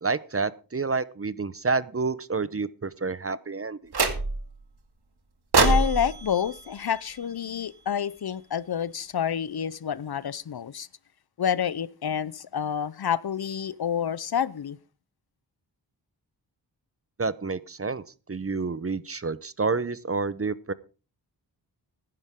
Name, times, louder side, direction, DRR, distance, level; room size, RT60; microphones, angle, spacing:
voice 1, 0.0-3.9 17.2-18.0 18.3-20.7, right 4 dB, 30° right, 0.8 m, -29 dB
sound 1, 3.9-4.6 5.5-7.8, right 3 dB, 65° right, 2.4 m, -26 dB
voice 2, 5.6-10.9 11.4-14.8, left 8 dB, 60° left, 0.7 m, -28 dB
16.0 x 11.0 x 3.7 m
wide cardioid pair, 70°, 43 cm